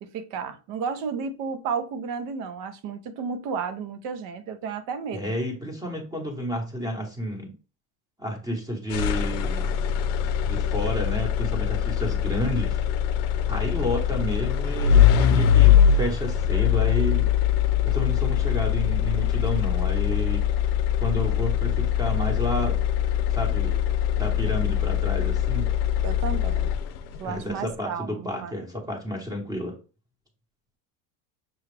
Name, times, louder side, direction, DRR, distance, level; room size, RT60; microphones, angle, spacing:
voice 1, 0.0-5.3 26.0-26.7 27.2-28.5, right 6 dB, 50° right, 0.7 m, -32 dB
voice 2, 5.1-7.5 8.2-9.8 10.4-12.8 13.5-17.3 17.8-20.4 21.0-23.8 24.2-25.7 27.2-29.8, equal, 10° right, 1.0 m, -31 dB
sound 1, 8.9-27.2, left 9 dB, 70° left, 0.6 m, -22 dB
6.0 x 2.4 x 3.2 m
cardioid pair, 150°, 42 cm